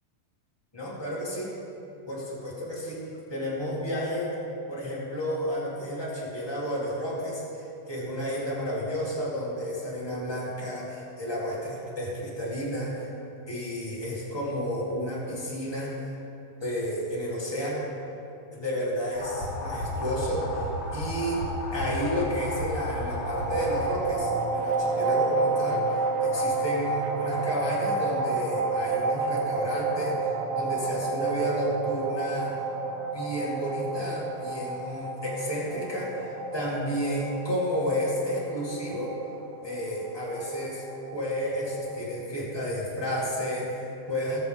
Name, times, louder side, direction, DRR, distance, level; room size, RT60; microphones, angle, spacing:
voice 1, 0.7-1.5 2.1-4.4 4.7-13.1 13.5-15.9 16.6-17.9 18.5-20.6 20.9-32.6 33.1-39.1 39.6-40.8 41.1-44.4, equal, 10° left, -6 dB, 1.4 m, -31 dB
sound 1, 19.1-24.2, left 1 dB, 50° left, 2.3 m, -33 dB
sound 2, 23.4-41.9, right 3 dB, 70° right, 2.2 m, -30 dB
20.0 x 7.4 x 3.6 m, 2.8 s
omnidirectional pair, 4.5 m